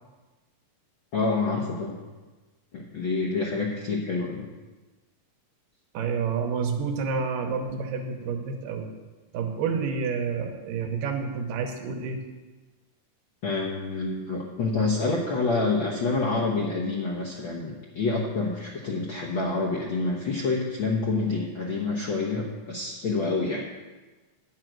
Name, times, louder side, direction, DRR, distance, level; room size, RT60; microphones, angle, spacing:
voice 1, 1.1-2.0 2.7-4.5 13.4-23.6, left 3 dB, 75° left, -3 dB, 1.1 m, -27 dB
voice 2, 5.9-8.9 9.3-12.2, right 5 dB, 80° right, 3 dB, 2.6 m, -29 dB
9.6 x 9.0 x 6.1 m, 1.3 s
omnidirectional pair, 3.9 m